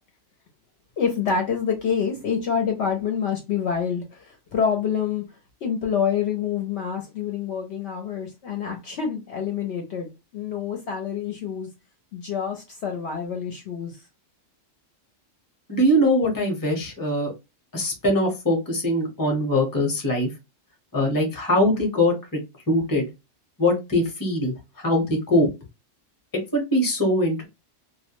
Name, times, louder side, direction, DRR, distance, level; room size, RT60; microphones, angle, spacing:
voice 1, 1.0-5.2 5.6-11.7 12.1-14.0, left 7 dB, 65° left, 0.8 m, -27 dB
voice 2, 15.7-17.3 17.7-20.3 20.9-22.4 22.7-23.1 23.6-25.5 26.5-27.4, left 1 dB, 20° left, 0.8 m, -22 dB
2.3 x 2.1 x 2.9 m
omnidirectional pair, 1.4 m